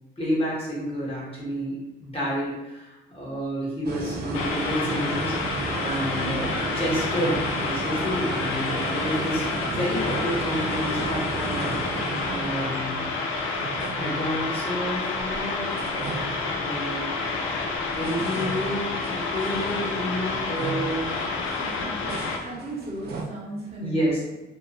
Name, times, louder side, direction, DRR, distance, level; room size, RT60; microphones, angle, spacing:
voice 1, 0.2-13.0 13.9-15.8 16.6-17.2 17.9-21.1 23.8-24.3, equal, 30° left, -6 dB, 1.1 m, -30 dB
sound 1, 3.8-15.4 15.7-17.1 17.7-23.2, right 3 dB, 55° right, 0.5 m, -34 dB
sound 2, 4.3-22.4, left 3 dB, 85° left, 0.4 m, -29 dB
voice 2, 21.6-22.1 22.4-24.2, right 1 dB, 35° right, -5 dB, 0.9 m, -36 dB
2.6 x 2.3 x 2.6 m, 1.0 s
cardioid pair, 90°, 20 cm